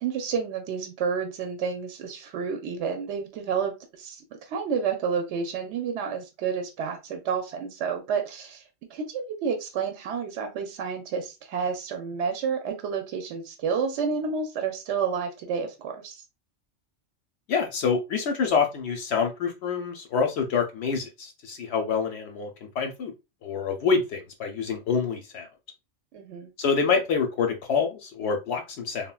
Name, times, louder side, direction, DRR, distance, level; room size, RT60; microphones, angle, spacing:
voice 1, 0.0-8.6 8.9-16.2 26.1-26.5, right 6 dB, 70° right, 5 dB, 0.9 m, -30 dB
voice 2, 17.5-22.5 22.8-23.1 23.4-25.5 26.6-29.1, left 5 dB, 65° left, 4 dB, 0.8 m, -26 dB
3.7 x 2.1 x 2.2 m, 0.25 s
omnidirectional pair, 1.3 m